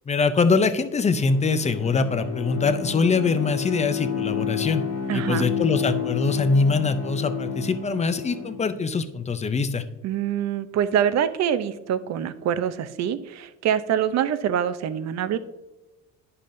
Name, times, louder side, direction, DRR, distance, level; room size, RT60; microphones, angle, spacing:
voice 1, 0.1-4.8 5.1-9.8, left 4 dB, 20° left, 11 dB, 0.5 m, -23 dB
Bowed string instrument, 1.1-8.8, left 7 dB, 50° left, 1.5 m, -30 dB
voice 2, 5.1-5.5 10.0-15.4, right 9 dB, 55° right, 12 dB, 0.5 m, -25 dB
10.0 x 5.5 x 2.6 m, 1.1 s
cardioid pair, 110°, 32 cm